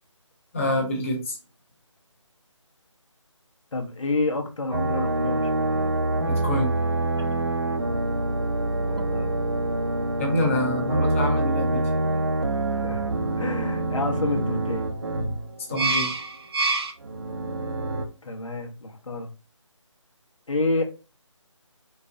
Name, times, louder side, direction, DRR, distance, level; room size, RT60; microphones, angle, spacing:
voice 1, 0.5-1.4 6.3-6.7 10.2-11.8 15.7-16.1, left 1 dB, 25° left, 0 dB, 1.1 m, -26 dB
voice 2, 3.7-5.7 8.8-9.4 10.9-11.0 12.7-13.0 13.4-14.9 18.2-19.3 20.5-20.8, left 2 dB, 75° left, 3 dB, 1.3 m, -29 dB
sound 1, 4.7-18.1, right 2 dB, 50° right, 0.8 m, -26 dB
4.5 x 4.2 x 2.8 m, 0.33 s
figure-of-eight pair, 165°, 16 cm